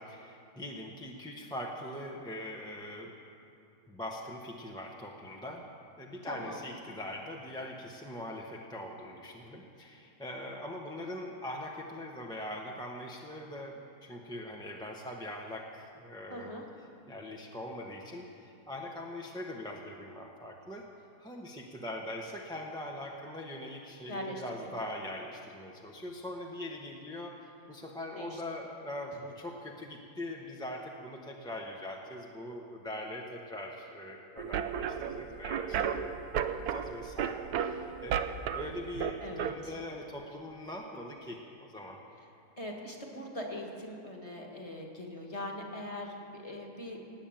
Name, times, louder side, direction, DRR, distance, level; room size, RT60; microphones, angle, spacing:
voice 1, 0.0-3.1 3.9-5.7 6.0-16.6 17.1-20.9 21.2-38.2 38.5-42.0, left 1 dB, 5° left, -1 dB, 0.7 m, -42 dB
voice 2, 6.2-6.6 16.3-16.6 24.1-24.7 28.2-28.4 39.2-39.7 42.6-47.1, left 1 dB, 20° left, 0 dB, 1.7 m, -41 dB
sound 1, 34.4-39.5, right 8 dB, 75° right, 1.1 m, -34 dB
18.5 x 7.2 x 9.0 m, 2.6 s
omnidirectional pair, 1.7 m